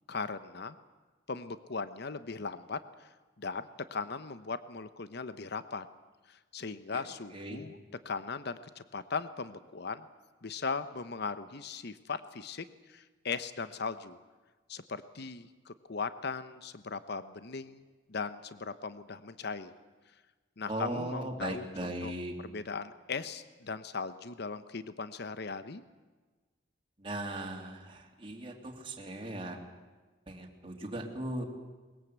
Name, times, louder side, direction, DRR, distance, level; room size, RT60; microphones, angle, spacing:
voice 1, 0.1-0.8 1.3-3.1 3.4-5.9 6.3-7.8 8.0-10.1 10.4-14.2 14.7-17.8 18.1-19.7 20.6-22.1 22.4-25.8, left 4 dB, 55° left, 12 dB, 0.9 m, -38 dB
voice 2, 20.7-22.3 27.0-29.6 30.3-31.4, right 1 dB, 25° right, 0 dB, 3.1 m, -38 dB
22.0 x 21.0 x 8.1 m, 1.3 s
head